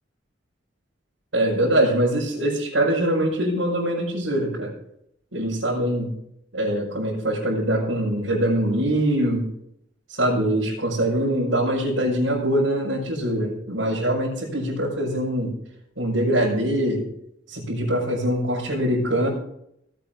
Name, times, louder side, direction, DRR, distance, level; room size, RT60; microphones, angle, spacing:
voice 1, 1.3-4.7 5.3-6.1 6.5-9.5 10.1-15.5 16.0-17.0 17.5-19.3, right 1 dB, 90° right, -8 dB, 5.3 m, -23 dB
18.0 x 8.9 x 3.8 m, 0.75 s
head